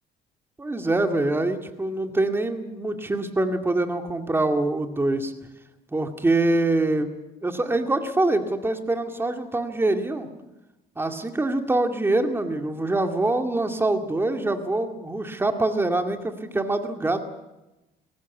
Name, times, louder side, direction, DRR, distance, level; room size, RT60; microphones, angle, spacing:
voice 1, 0.6-5.3 5.9-7.1 7.4-10.3 11.0-17.2, right 2 dB, 15° right, 6 dB, 2.2 m, -24 dB
21.0 x 18.5 x 8.4 m, 1.0 s
cardioid pair, 110°, 17 cm